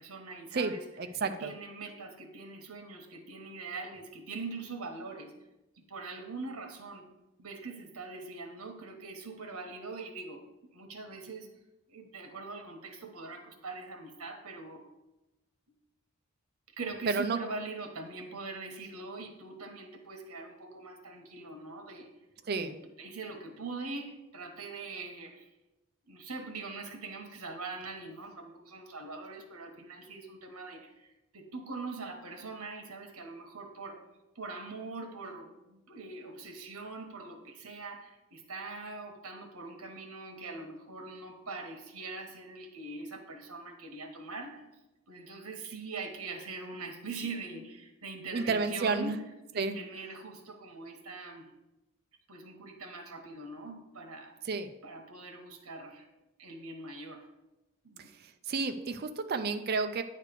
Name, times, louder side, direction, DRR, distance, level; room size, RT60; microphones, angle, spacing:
voice 1, 0.0-0.8 1.2-5.3 5.8-7.1 7.4-11.5 11.9-14.8 16.8-22.1 22.6-25.5 26.1-31.1 31.3-34.0 34.3-44.7 45.1-49.1 49.5-51.5 52.3-54.3 54.8-56.1 56.4-57.3 57.8-58.1, right 3 dB, 75° right, 4 dB, 1.3 m, -42 dB
voice 2, 0.5-1.5 17.1-17.4 22.5-22.8 48.3-49.2 49.6-49.8 54.4-54.7 58.0-60.0, right 4 dB, 45° right, 7 dB, 0.4 m, -31 dB
9.5 x 3.3 x 6.7 m, 0.98 s
head